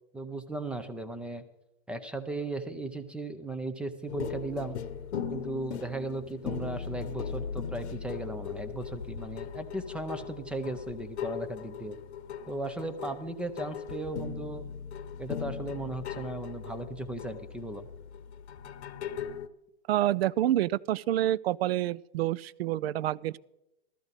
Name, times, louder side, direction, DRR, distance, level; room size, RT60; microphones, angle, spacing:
voice 1, 0.1-1.4 1.9-4.8 5.3-12.0 12.5-14.6 15.2-17.9, right 2 dB, 5° right, 0.4 m, -36 dB
sound 1, 4.1-19.5, left 7 dB, 85° left, 1.0 m, -39 dB
voice 2, 19.9-23.4, right 13 dB, 65° right, 0.5 m, -28 dB
14.5 x 13.5 x 4.0 m
hypercardioid pair, 140°, 32 cm